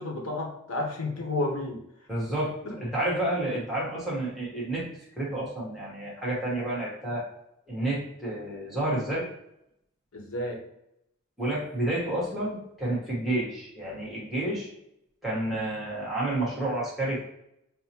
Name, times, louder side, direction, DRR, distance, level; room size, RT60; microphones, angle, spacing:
voice 1, 0.0-1.8 2.6-2.8 10.1-10.6, left 2 dB, 75° left, 1 dB, 0.9 m, -31 dB
voice 2, 2.1-4.9 5.2-7.3 7.7-9.3 11.4-14.7 15.2-17.2, right 1 dB, ahead, -6 dB, 1.1 m, -30 dB
5.5 x 2.1 x 2.8 m, 0.80 s
head